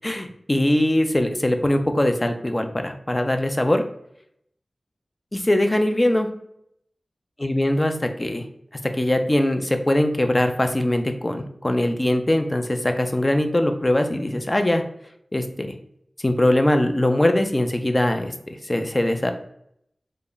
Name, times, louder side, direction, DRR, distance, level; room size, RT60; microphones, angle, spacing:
voice 1, 0.0-3.8 5.3-6.3 7.4-8.5 9.0-14.8 15.3-15.7 16.2-19.3, left 1 dB, 30° left, 6 dB, 0.5 m, -21 dB
3.3 x 2.1 x 3.8 m, 0.74 s
wide cardioid pair, 50°, 0 cm